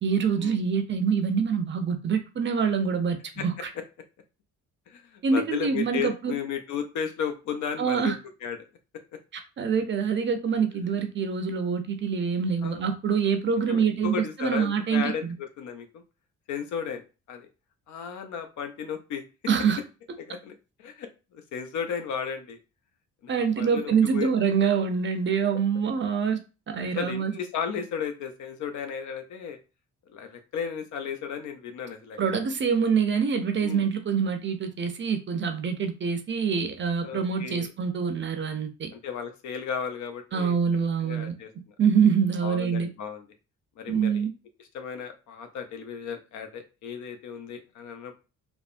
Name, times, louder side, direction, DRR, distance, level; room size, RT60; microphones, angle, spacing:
voice 1, 0.0-3.7 5.2-6.3 7.8-8.2 9.6-15.3 19.5-19.8 23.3-26.4 26.7-27.3 32.2-38.9 40.3-41.4 41.8-42.9 43.9-44.3, right 6 dB, 40° right, 6 dB, 0.5 m, -25 dB
voice 2, 4.9-8.6 12.6-12.8 13.7-16.0 16.5-17.0 17.3-17.5 17.9-19.2 20.2-22.6 23.2-24.3 26.9-29.6 30.1-32.4 33.6-33.9 37.0-37.7 38.9-40.6 41.0-41.7 42.4-43.2 43.8-44.2 44.7-48.1, left 7 dB, 75° left, 7 dB, 0.7 m, -34 dB
3.4 x 2.1 x 2.5 m, 0.31 s
cardioid pair, 90°, 30 cm